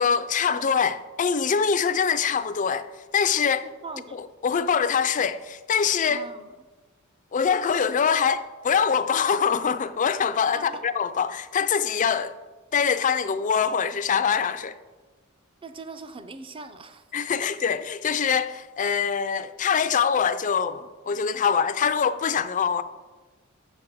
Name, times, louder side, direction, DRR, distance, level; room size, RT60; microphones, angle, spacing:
voice 1, 0.0-2.9 3.1-3.7 4.1-6.3 7.3-12.4 12.7-14.8 17.1-22.8, left 6 dB, 35° left, 0.4 m, -24 dB
voice 2, 3.6-4.2 6.1-6.5 10.5-10.8 15.6-17.0 17.4-17.5, right 3 dB, 25° right, 0.5 m, -40 dB
6.5 x 6.3 x 6.1 m
head